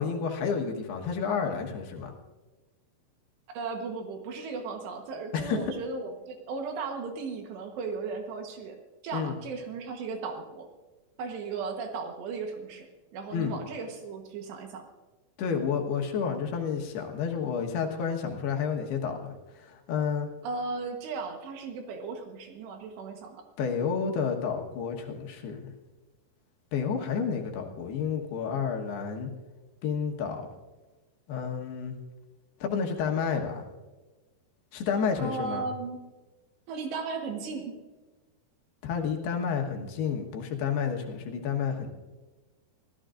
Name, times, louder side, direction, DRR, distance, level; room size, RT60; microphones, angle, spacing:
voice 1, 0.0-2.1 5.3-5.6 9.1-9.4 13.3-13.6 15.4-20.3 23.6-25.7 26.7-29.3 29.8-30.4 31.3-32.0 32.6-33.6 34.7-35.7 38.8-41.9, left 6 dB, 70° left, 2 dB, 3.3 m, -30 dB
voice 2, 3.5-8.8 9.0-10.7 11.2-12.9 13.1-14.8 20.4-23.4 35.2-36.0 36.7-37.7, right 4 dB, 80° right, 3 dB, 3.4 m, -36 dB
25.0 x 16.0 x 2.5 m, 1.2 s
omnidirectional pair, 5.0 m